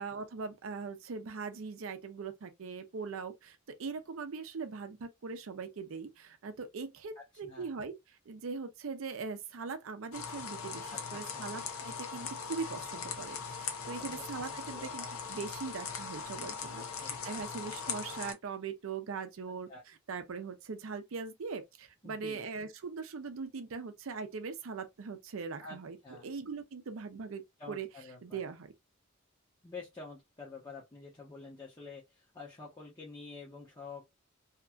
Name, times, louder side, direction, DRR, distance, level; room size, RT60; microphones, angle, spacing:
voice 1, 0.0-7.9 8.3-27.4 27.7-27.9 28.2-28.7, right 5 dB, 70° right, 0.5 m, -41 dB
voice 2, 7.2-7.7 10.9-11.5 14.0-14.2 14.6-15.1 16.8-17.4 19.7-19.8 22.0-22.4 25.6-26.3 27.6-28.4 29.6-34.0, left 3 dB, 20° left, 0.7 m, -48 dB
sound 1, 10.1-18.3, left 6 dB, 80° left, 0.7 m, -40 dB
2.8 x 2.5 x 2.2 m
head